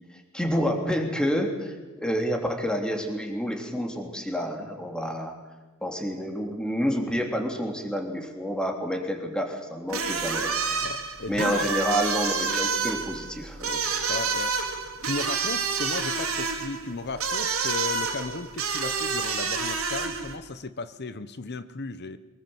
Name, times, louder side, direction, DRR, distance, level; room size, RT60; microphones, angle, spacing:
voice 1, 0.3-5.3 5.8-10.5 11.3-13.8, equal, 5° left, 3 dB, 3.2 m, -29 dB
sound 1, 9.9-20.4, right 5 dB, 80° right, 3.6 m, -28 dB
voice 2, 10.8-11.7 14.1-14.5 15.0-22.2, left 3 dB, 50° left, 13 dB, 1.0 m, -35 dB
24.0 x 19.5 x 8.0 m, 1.3 s
head